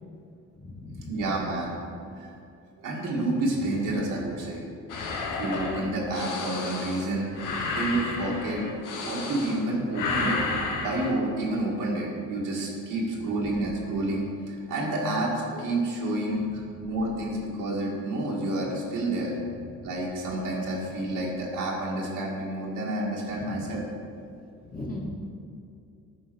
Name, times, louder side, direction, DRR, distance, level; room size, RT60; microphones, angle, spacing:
voice 1, 0.6-1.2 19.7-19.8 23.3-23.5 24.6-25.0, left 2 dB, 25° left, -3 dB, 1.8 m, -39 dB
voice 2, 1.1-1.8 2.2-2.3 2.8-4.6 5.4-8.6 9.0-10.4 10.8-19.3 19.8-23.8, right 1 dB, 80° right, -3 dB, 2.0 m, -29 dB
sound 1, 4.9-9.7 9.9-11.1, left 3 dB, 85° left, 1.1 m, -31 dB
9.6 x 4.0 x 6.2 m, 2.5 s
cardioid pair, 85°, 31 cm